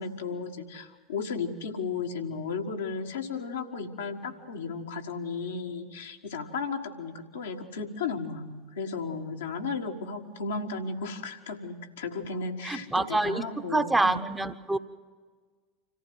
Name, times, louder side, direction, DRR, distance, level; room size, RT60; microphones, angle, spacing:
voice 1, 0.0-14.2, left 4 dB, 70° left, 2 dB, 1.6 m, -34 dB
voice 2, 12.6-14.8, right 2 dB, 10° right, 9 dB, 1.0 m, -27 dB
26.0 x 14.5 x 7.8 m, 1.5 s
figure-of-eight pair, 75°, 0 cm